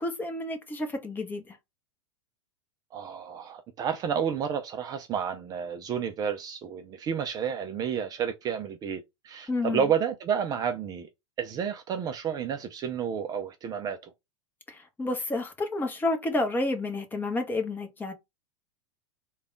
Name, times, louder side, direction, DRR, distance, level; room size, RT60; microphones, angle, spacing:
voice 1, 0.0-1.6 9.5-9.9 14.7-18.1, left 2 dB, 10° left, 0.9 m, -30 dB
voice 2, 2.9-11.1 11.4-14.1, right 7 dB, 25° right, 0.4 m, -31 dB
3.3 x 2.3 x 3.7 m
figure-of-eight pair, 90°, 15 cm